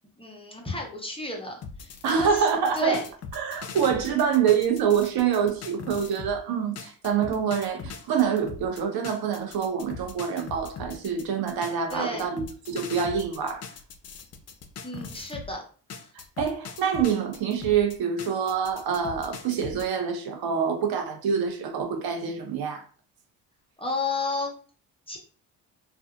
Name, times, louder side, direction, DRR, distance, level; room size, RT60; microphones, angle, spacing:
voice 1, 0.2-2.4 2.7-3.1 11.9-12.3 14.8-15.6 23.8-24.5 25.1-25.2, left 3 dB, 15° left, 0.8 m, -32 dB
sound 1, 1.6-6.4 6.8-15.5 15.9-19.9, left 5 dB, 40° left, 0.5 m, -41 dB
voice 2, 2.0-3.0 3.3-13.6 16.1-22.8, right 7 dB, 65° right, 0.8 m, -26 dB
2.5 x 2.3 x 2.4 m
supercardioid pair, 65°, 40 cm